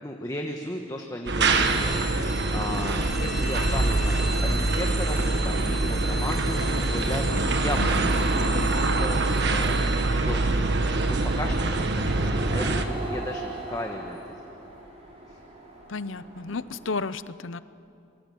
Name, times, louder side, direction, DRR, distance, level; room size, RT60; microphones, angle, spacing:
voice 1, 0.0-7.2 7.6-9.2 9.5-14.2 15.3-15.4, left 1 dB, 15° left, 2 dB, 1.4 m, -36 dB
sound 1, 1.3-12.8, right 2 dB, 55° right, 1.6 m, -24 dB
sound 2, 1.5-13.6, right 1 dB, 5° right, 3.1 m, -39 dB
voice 2, 7.8-8.1 15.9-17.6, left 4 dB, 70° left, 15 dB, 0.7 m, -32 dB
sound 3, 12.0-17.1, right 2 dB, 30° right, 4.6 m, -39 dB
26.0 x 23.5 x 7.8 m, 2.6 s
head